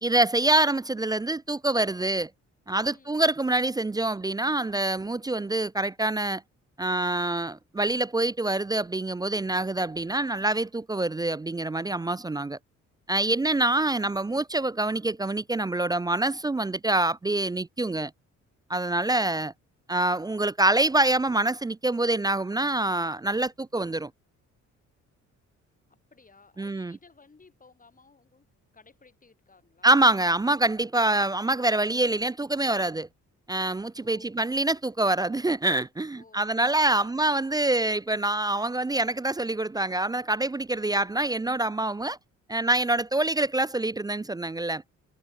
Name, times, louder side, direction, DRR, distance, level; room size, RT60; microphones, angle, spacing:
voice 1, 0.0-2.3 2.7-6.4 6.8-12.6 13.1-18.1 18.7-19.5 19.9-24.1 26.6-27.0 29.8-33.1 33.5-42.2 42.5-44.8, right 2 dB, 15° right, 0.4 m, -25 dB
voice 2, 2.9-3.2 25.9-28.4 28.7-29.9 34.0-34.4 36.1-37.2, left 4 dB, 25° left, 4.9 m, -57 dB
cardioid pair, 90°, 30 cm